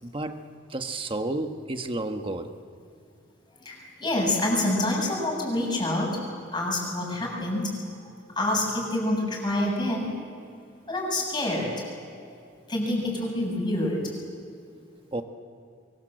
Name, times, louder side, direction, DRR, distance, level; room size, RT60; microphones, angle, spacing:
voice 1, 0.0-0.4 0.7-2.6 15.1-15.2, right 2 dB, 25° right, 6 dB, 1.4 m, -31 dB
voice 2, 3.6-6.2 6.5-7.8 8.4-10.2 10.9-11.8 12.7-14.1, left 1 dB, 20° left, -1 dB, 6.8 m, -27 dB
25.0 x 24.0 x 7.8 m, 2.4 s
head